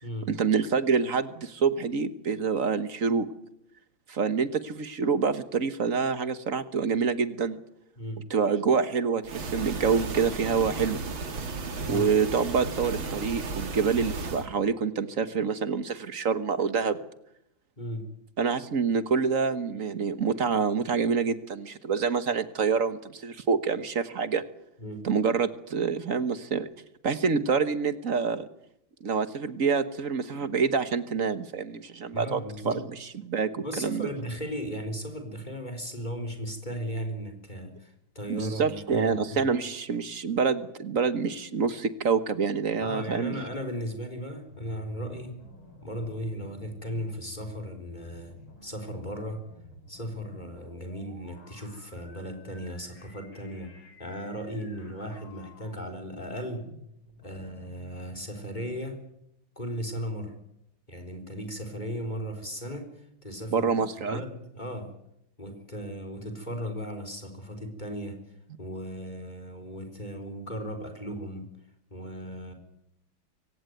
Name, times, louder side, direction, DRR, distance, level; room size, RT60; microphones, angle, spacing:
voice 1, 0.3-3.3 4.1-7.6 8.3-11.0 11.9-17.0 18.4-24.4 25.0-26.7 27.0-28.5 29.0-34.1 38.3-43.4 63.5-64.2, right 5 dB, 45° right, 13 dB, 1.4 m, -27 dB
sound 1, 9.2-14.5, right 4 dB, 70° right, 3.1 m, -34 dB
voice 2, 17.8-18.1 24.8-25.0 32.1-32.8 33.6-39.4 42.8-45.4 45.8-48.3 48.6-49.4 49.9-56.6 57.2-59.0 59.6-60.3 60.9-63.8 64.1-64.9 65.4-68.2 68.6-71.5 71.9-72.5, equal, 20° left, 6 dB, 4.0 m, -36 dB
unintelligible radio, 44.5-58.8, left 3 dB, 80° left, 5.8 m, -52 dB
23.5 x 17.5 x 9.2 m, 0.79 s
omnidirectional pair, 2.2 m